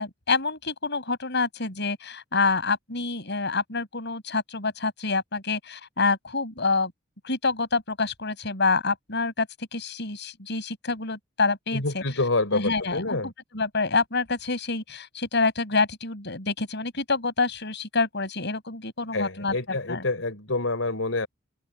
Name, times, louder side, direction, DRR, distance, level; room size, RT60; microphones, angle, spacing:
voice 1, 0.0-6.9 7.2-9.5 9.7-12.0 12.5-20.0, left 4 dB, 60° left, 7.8 m, -27 dB
voice 2, 11.7-13.3 19.1-21.3, left 2 dB, 75° left, 4.4 m, -27 dB
open air
head